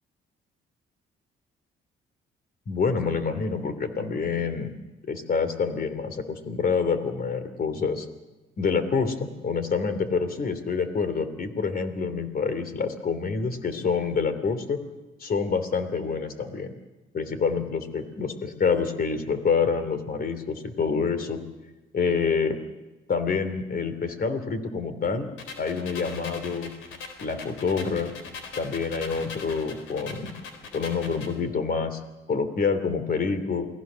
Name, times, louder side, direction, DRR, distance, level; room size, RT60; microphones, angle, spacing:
voice 1, 2.7-4.7 5.1-8.1 8.6-14.8 15.2-16.7 17.1-21.4 21.9-22.6 23.1-25.3 25.6-26.7 27.2-28.1 28.6-30.3 30.7-32.0 32.3-33.7, left 5 dB, 50° left, 10 dB, 3.1 m, -27 dB
sound 1, 25.4-31.4, left 4 dB, 90° left, 3.9 m, -41 dB
28.5 x 20.0 x 6.4 m, 1.1 s
cardioid pair, 90°, 20 cm